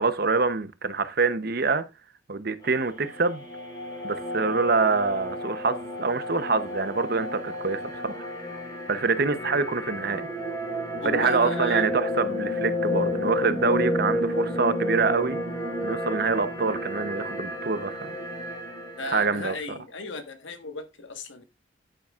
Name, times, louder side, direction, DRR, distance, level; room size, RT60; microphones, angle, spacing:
voice 1, 0.0-1.8 2.3-3.4 4.0-8.3 8.9-10.2 11.0-15.4 15.8-18.0 19.1-19.8, right 4 dB, 50° right, 0.8 m, -25 dB
sound 1, 2.6-19.5, left 1 dB, 20° left, 4.1 m, -31 dB
voice 2, 11.0-11.9 19.0-21.4, left 2 dB, 75° left, 1.4 m, -35 dB
10.0 x 9.2 x 2.4 m
head